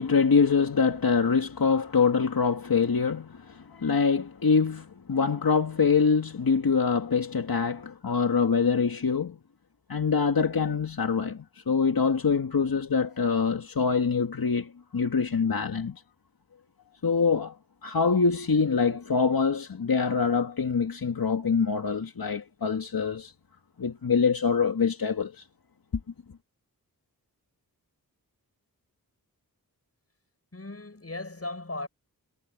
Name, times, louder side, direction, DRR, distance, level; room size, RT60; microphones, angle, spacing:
voice 1, 0.0-9.4 9.9-16.0 17.0-17.5 17.8-23.3 23.8-25.4, left 5 dB, 70° left, 2.2 m, -25 dB
voice 2, 30.5-31.9, left 2 dB, 40° left, 7.0 m, -37 dB
cardioid pair, 45°, 37 cm